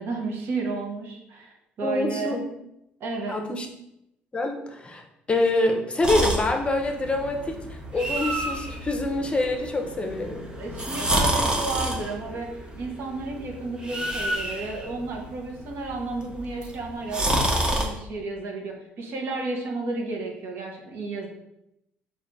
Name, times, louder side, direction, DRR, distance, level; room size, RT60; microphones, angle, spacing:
voice 1, 0.0-2.4 3.0-3.4 10.6-12.5 12.8-21.3, right 3 dB, 60° right, 0 dB, 1.0 m, -32 dB
voice 2, 1.8-2.4 3.3-3.7 4.3-7.6 7.9-10.5, left 2 dB, 25° left, 3 dB, 0.7 m, -26 dB
sound 1, 6.0-17.8, right 1 dB, 20° right, 0.9 m, -29 dB
3.7 x 2.6 x 3.5 m, 0.82 s
supercardioid pair, 65°, 4 cm